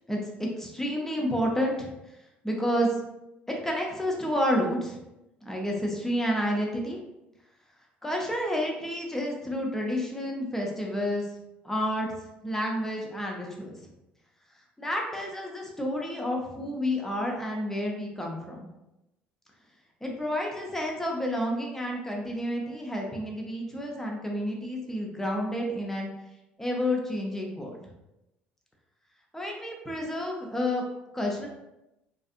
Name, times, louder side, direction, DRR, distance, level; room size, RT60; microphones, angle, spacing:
voice 1, 0.1-1.9 2.4-3.0 3.5-5.0 5.4-7.0 8.0-11.3 11.6-12.1 12.4-13.8 14.8-18.6 20.0-26.1 26.6-27.7 29.3-30.8 31.1-31.5, equal, 5° left, -1 dB, 0.6 m, -30 dB
2.5 x 2.4 x 2.5 m, 0.92 s
figure-of-eight pair, 55°, 5 cm